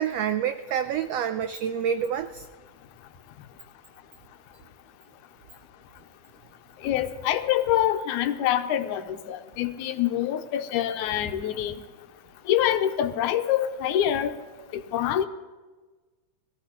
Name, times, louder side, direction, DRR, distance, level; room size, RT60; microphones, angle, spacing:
voice 1, 0.0-2.4, right 8 dB, 90° right, 9 dB, 1.4 m, -27 dB
voice 2, 6.8-11.8 12.5-14.3 14.7-15.3, left 11 dB, 90° left, 9 dB, 2.1 m, -25 dB
21.5 x 15.5 x 3.0 m, 1.3 s
omnidirectional pair, 3.4 m